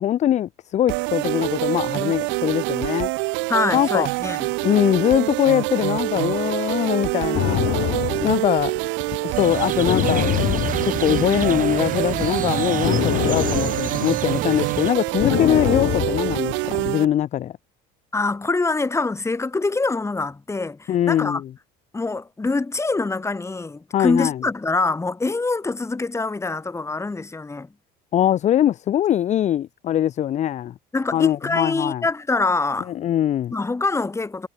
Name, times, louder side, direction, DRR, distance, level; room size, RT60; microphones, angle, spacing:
voice 1, 0.0-3.1 3.7-4.1 4.6-7.6 8.2-8.7 9.2-10.4 10.8-17.5 20.9-21.5 23.9-24.4 28.1-30.7 31.1-32.0 32.9-33.5, left 11 dB, 35° left, 0.6 m, -22 dB
sound 1, 0.9-17.1, right 25 dB, 70° right, 0.7 m, -26 dB
voice 2, 3.5-4.5 15.3-15.4 18.1-21.4 21.9-27.7 30.9-32.9 33.5-34.5, left 3 dB, 15° left, 2.9 m, -24 dB
sound 2, 7.3-11.7 12.0-16.9, left 16 dB, 60° left, 2.6 m, -25 dB
sound 3, 9.3-14.9, right 10 dB, 40° right, 3.2 m, -30 dB
cardioid pair, 115°, 20 cm